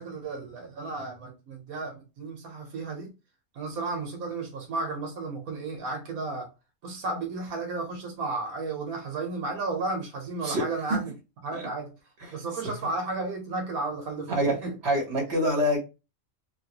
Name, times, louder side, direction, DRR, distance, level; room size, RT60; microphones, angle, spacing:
voice 1, 0.0-3.1 3.5-6.5 6.8-11.1 11.4-11.9 12.3-14.8, right 3 dB, 85° right, 1.4 m, -33 dB
voice 2, 14.8-15.8, equal, 50° right, 1.4 m, -25 dB
3.6 x 2.3 x 2.9 m
omnidirectional pair, 1.5 m